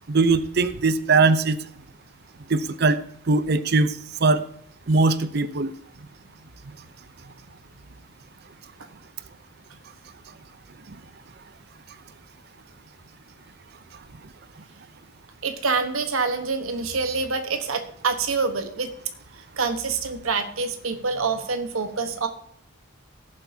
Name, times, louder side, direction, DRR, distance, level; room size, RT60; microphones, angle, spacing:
voice 1, 0.1-1.6 2.5-3.0 3.3-4.4 4.9-5.7, right 3 dB, 50° right, 13 dB, 0.6 m, -20 dB
voice 2, 15.4-18.9 19.6-22.3, right 4 dB, 85° right, 7 dB, 1.1 m, -26 dB
17.5 x 7.5 x 2.7 m, 0.68 s
head